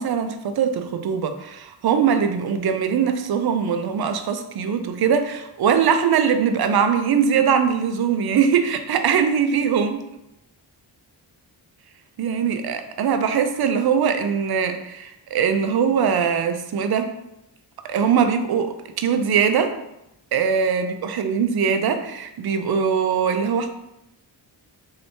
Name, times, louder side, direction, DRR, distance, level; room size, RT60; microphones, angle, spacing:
voice 1, 0.0-10.0 12.2-17.1 17.8-19.7 20.3-23.7, right 7 dB, 55° right, 7 dB, 0.5 m, -21 dB
3.2 x 2.9 x 2.8 m, 0.87 s
wide cardioid pair, 70°, 46 cm